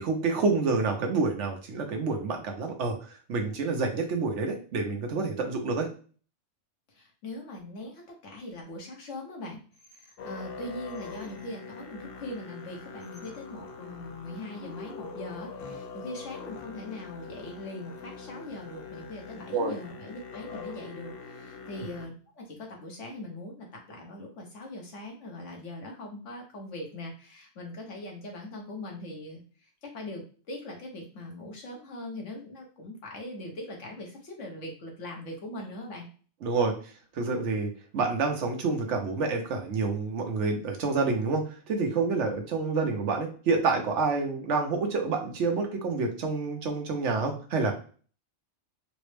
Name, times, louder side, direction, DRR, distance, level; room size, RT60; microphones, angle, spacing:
voice 1, 0.0-5.9 19.5-19.7 36.4-36.7 37.1-47.7, right 4 dB, 75° right, 3 dB, 1.1 m, -28 dB
voice 2, 6.9-36.1, left 1 dB, 90° left, 0 dB, 1.4 m, -41 dB
Musical instrument, 10.2-22.1, left 4 dB, 60° left, 0.7 m, -43 dB
4.1 x 2.1 x 3.2 m, 0.40 s
omnidirectional pair, 1.2 m